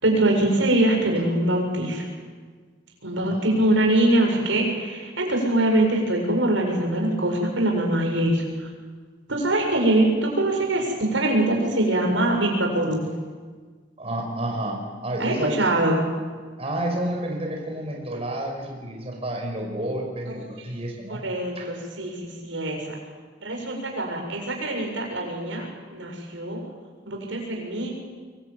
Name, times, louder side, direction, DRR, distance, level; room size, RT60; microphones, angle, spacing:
voice 1, 0.0-2.1 3.0-8.7 9.3-13.1 15.2-16.0 21.1-23.0 23.4-26.6 27.0-27.9, right 1 dB, 85° right, 1 dB, 7.3 m, -23 dB
voice 2, 14.0-15.7 16.6-21.2 21.6-21.7, right 1 dB, 35° right, 0 dB, 5.3 m, -30 dB
24.5 x 23.5 x 9.3 m, 1.5 s
head